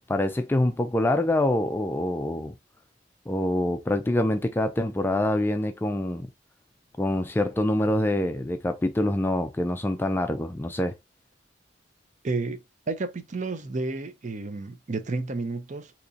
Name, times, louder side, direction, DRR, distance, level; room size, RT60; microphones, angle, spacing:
voice 1, 0.1-2.6 3.3-6.3 7.0-10.9, left 1 dB, 10° left, 0.3 m, -25 dB
voice 2, 12.2-15.9, right 3 dB, 40° right, 0.5 m, -31 dB
3.7 x 2.9 x 2.6 m
head